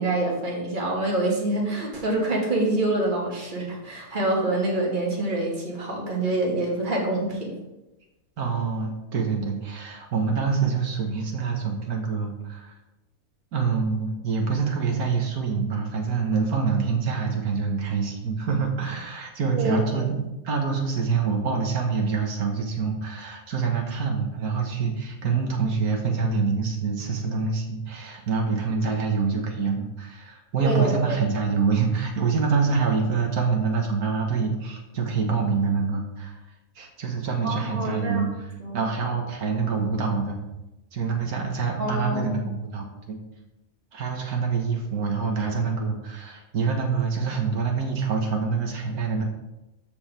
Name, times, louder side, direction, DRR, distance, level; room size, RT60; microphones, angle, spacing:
voice 1, 0.0-7.5 19.5-20.0 30.6-31.2 37.4-38.2 38.6-38.8 41.8-42.4, right 2 dB, 35° right, -2 dB, 2.2 m, -26 dB
voice 2, 8.4-12.7 13.5-20.2 20.4-36.4 36.7-38.3 38.7-40.4 40.9-43.2 43.9-49.2, right 5 dB, 90° right, 1 dB, 1.9 m, -26 dB
13.0 x 7.0 x 3.4 m, 1.0 s
omnidirectional pair, 1.5 m